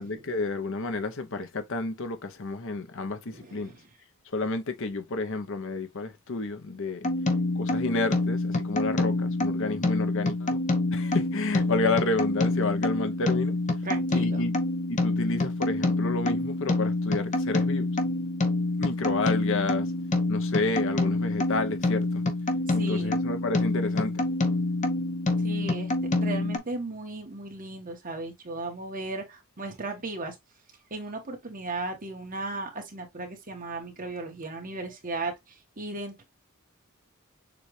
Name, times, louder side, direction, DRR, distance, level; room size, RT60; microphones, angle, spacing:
voice 1, 0.0-3.7 4.3-7.0 7.5-10.6 10.9-13.6 14.1-14.5 14.9-17.9 18.8-20.0 20.3-22.2 22.7-24.2, left 3 dB, 65° left, 0.8 m, -30 dB
voice 2, 3.3-3.8 13.8-14.5 22.8-23.3 25.4-25.9 26.2-30.4 30.9-36.2, right 2 dB, 40° right, 1.4 m, -36 dB
sound 1, 7.0-26.6, left 2 dB, 35° left, 0.9 m, -27 dB
6.8 x 2.5 x 3.2 m
head